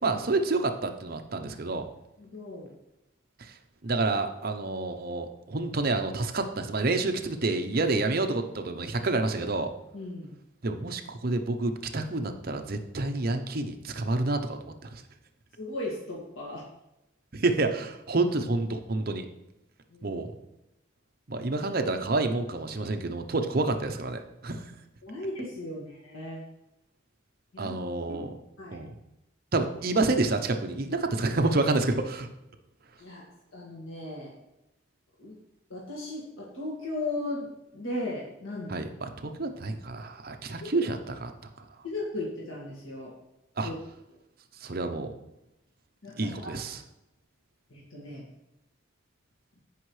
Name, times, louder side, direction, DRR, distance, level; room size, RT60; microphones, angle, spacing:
voice 1, 0.0-1.8 3.4-3.5 3.8-9.7 10.6-15.0 17.3-19.3 20.0-20.3 21.3-24.6 27.6-28.3 28.7-28.9 29.5-32.3 38.7-41.3 43.6-43.7 44.6-45.1 46.2-46.8, right 2 dB, 50° right, 6 dB, 0.7 m, -28 dB
voice 2, 2.2-2.7 9.9-10.3 15.6-16.6 19.9-20.2 25.0-26.4 27.5-27.8 28.1-28.8 33.0-33.2 33.5-34.4 35.2-35.4 35.7-37.5 37.7-38.7 40.6-40.7 41.8-43.1 43.6-43.7 46.0-46.8 47.7-48.3, left 2 dB, 85° left, -4 dB, 2.0 m, -37 dB
15.0 x 5.5 x 3.2 m, 0.90 s
head